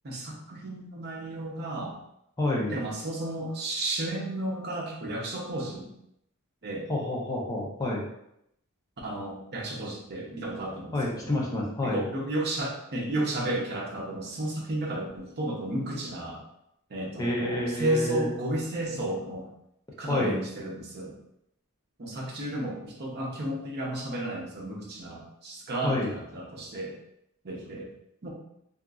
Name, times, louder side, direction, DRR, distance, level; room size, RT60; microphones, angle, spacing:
voice 1, 0.0-2.0 2.7-5.9 6.6-6.9 9.0-11.3 11.8-16.4 16.9-19.5 20.0-21.2 22.0-27.0 27.4-27.9 28.2-28.3, right 1 dB, 50° right, -2 dB, 0.7 m, -33 dB
voice 2, 2.4-2.7 6.9-8.0 10.9-12.0 17.2-18.3 20.1-20.3 25.8-26.1, left 1 dB, 15° left, -3 dB, 0.6 m, -28 dB
2.8 x 2.4 x 2.4 m, 0.77 s
head